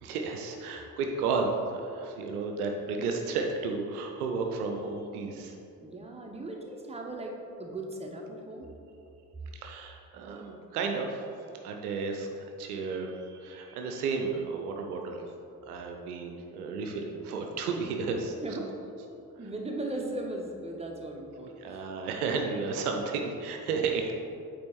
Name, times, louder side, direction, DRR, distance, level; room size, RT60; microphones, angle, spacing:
voice 1, 0.0-5.6 9.5-11.3 11.6-15.2 15.7-18.6 21.6-24.1, right 4 dB, 75° right, 2 dB, 0.7 m, -33 dB
voice 2, 5.8-8.7 18.4-18.9 19.4-21.8, right 2 dB, 15° right, 1 dB, 1.0 m, -38 dB
8.5 x 3.6 x 4.5 m, 2.7 s
figure-of-eight pair, 40°, 46 cm